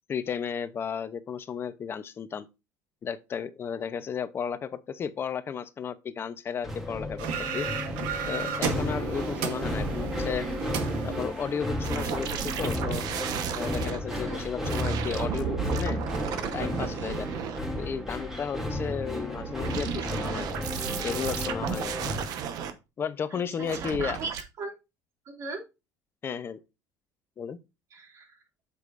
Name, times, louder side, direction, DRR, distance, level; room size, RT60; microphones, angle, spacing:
voice 1, 0.1-2.5 3.0-7.3 7.5-7.7 8.2-10.5 11.0-13.0 13.6-16.0 16.5-17.3 17.8-20.5 21.0-21.9 23.0-24.2 26.2-26.6 27.4-27.6, left 7 dB, 30° left, 0.7 m, -33 dB
sound 1, 6.6-22.3, left 1 dB, 5° right, 2.5 m, -33 dB
sound 2, 7.2-12.1, right 7 dB, 90° right, 1.4 m, -34 dB
sound 3, 11.8-14.0 14.6-18.0 19.3-22.7 23.6-24.4, right 8 dB, 60° right, 1.0 m, -34 dB
voice 2, 14.1-14.4 23.3-24.7 25.3-25.6 27.9-28.4, right 4 dB, 45° right, 3.6 m, -38 dB
7.9 x 6.9 x 2.5 m
cardioid pair, 130°, 7 cm